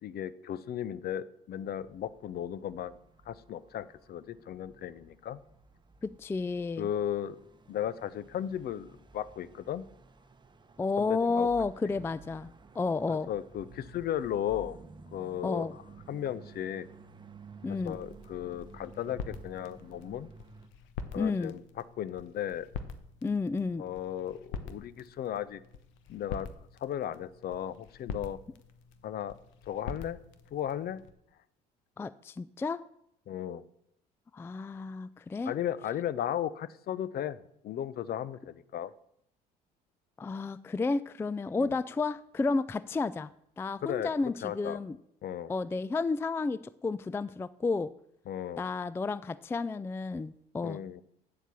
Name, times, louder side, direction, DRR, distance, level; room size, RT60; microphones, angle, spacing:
voice 1, 0.0-3.0 3.3-5.4 6.8-7.4 7.7-9.8 11.0-11.5 11.8-11.9 13.1-14.8 15.1-15.7 16.1-16.9 17.8-20.3 21.1-22.7 23.8-25.6 26.1-26.5 26.8-28.4 29.0-29.4 29.7-30.2 30.5-31.0 33.3-33.6 35.5-38.9 41.5-41.7 43.8-44.8 45.2-45.5 48.3-48.6 50.6-51.0, left 10 dB, 50° left, 17 dB, 0.6 m, -35 dB
sound 1, 1.6-20.7, right 3 dB, 20° right, 1.0 m, -54 dB
voice 2, 6.0-6.9 10.8-13.3 15.4-15.7 17.6-18.0 21.2-21.5 23.2-23.8 32.0-32.8 34.3-35.5 40.2-43.3 43.6-45.0 45.5-47.9 48.6-50.8, left 4 dB, 10° left, 17 dB, 0.3 m, -31 dB
sound 2, 17.6-31.1, left 5 dB, 65° left, 1.0 m, -45 dB
8.6 x 7.3 x 6.9 m, 0.75 s
hypercardioid pair, 65°, 21 cm